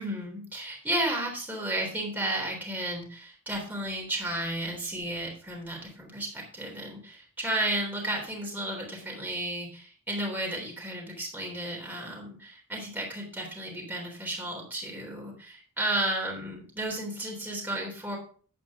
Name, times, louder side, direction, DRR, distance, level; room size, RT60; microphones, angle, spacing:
voice 1, 0.0-18.2, right 1 dB, 10° right, -2 dB, 3.5 m, -33 dB
10.5 x 8.9 x 3.7 m, 0.42 s
head